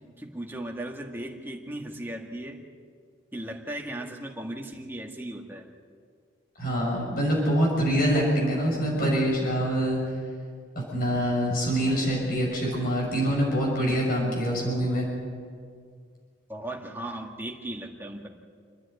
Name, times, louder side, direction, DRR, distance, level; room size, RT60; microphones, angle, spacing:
voice 1, 0.2-2.6 3.3-5.7 16.5-18.3, right 1 dB, 10° right, 0 dB, 2.0 m, -37 dB
voice 2, 6.6-10.0 10.7-15.1, equal, 45° left, -3 dB, 6.6 m, -25 dB
28.5 x 10.5 x 9.7 m, 2.1 s
head